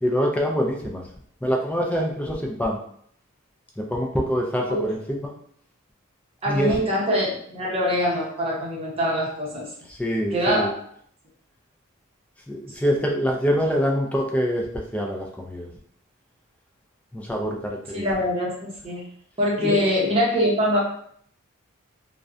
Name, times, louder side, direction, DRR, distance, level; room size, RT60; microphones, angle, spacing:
voice 1, 0.0-1.0 1.4-2.8 3.8-5.0 5.2-5.3 6.5-6.8 9.9-10.7 12.5-15.7 17.1-18.1 19.6-19.8, equal, 5° left, 0 dB, 0.3 m, -25 dB
voice 2, 6.4-9.7 10.3-10.8 17.9-19.1 19.4-20.8, equal, 30° right, -4 dB, 0.7 m, -24 dB
2.5 x 2.1 x 2.4 m, 0.64 s
head